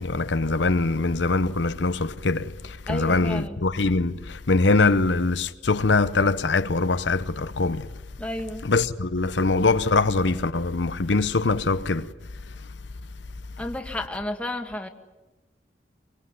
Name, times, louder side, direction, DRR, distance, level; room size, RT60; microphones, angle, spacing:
voice 1, 0.0-7.9 8.6-12.1, left 3 dB, 80° left, 0.9 m, -23 dB
voice 2, 2.9-3.6 8.2-8.7 13.6-14.9, left 1 dB, 5° left, 2.0 m, -32 dB
25.0 x 21.5 x 9.9 m
head